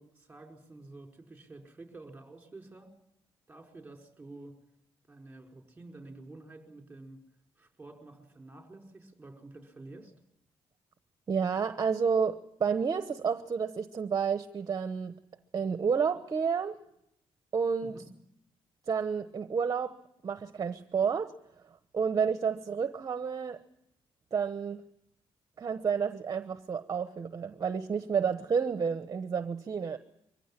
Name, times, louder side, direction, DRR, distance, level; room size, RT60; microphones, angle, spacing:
voice 1, 0.0-2.9 3.5-4.5 5.1-7.2 7.6-10.1 17.8-18.1, right 2 dB, 15° right, 3 dB, 5.0 m, -49 dB
voice 2, 11.3-15.1 15.5-16.7 17.5-18.0 18.9-20.0 20.2-21.3 21.9-23.6 24.3-24.8 25.6-30.0, right 6 dB, 35° right, 10 dB, 1.0 m, -30 dB
24.0 x 15.5 x 10.0 m, 0.82 s
cardioid pair, 115°, 10 cm